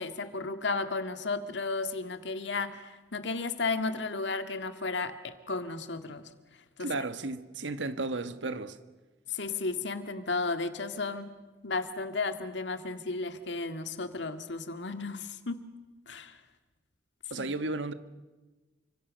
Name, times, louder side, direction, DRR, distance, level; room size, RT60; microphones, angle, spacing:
voice 1, 0.0-6.2 6.8-7.0 9.3-11.3 11.6-15.6 16.1-16.4 17.4-17.5, left 3 dB, 80° left, 1.9 m, -34 dB
voice 2, 6.8-8.8 17.3-17.9, right 2 dB, 90° right, 1.5 m, -34 dB
30.0 x 25.5 x 6.4 m
head